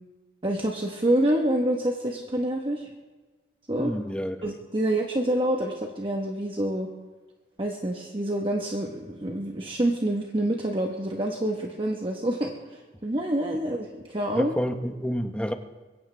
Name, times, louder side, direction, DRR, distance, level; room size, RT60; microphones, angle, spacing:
voice 1, 0.4-2.9 3.7-3.9 4.4-6.9 7.6-14.5, right 1 dB, 30° right, 1 dB, 1.1 m, -27 dB
voice 2, 3.8-4.4 14.3-15.5, equal, 5° left, 7 dB, 0.8 m, -29 dB
22.5 x 16.0 x 3.3 m, 1.3 s
head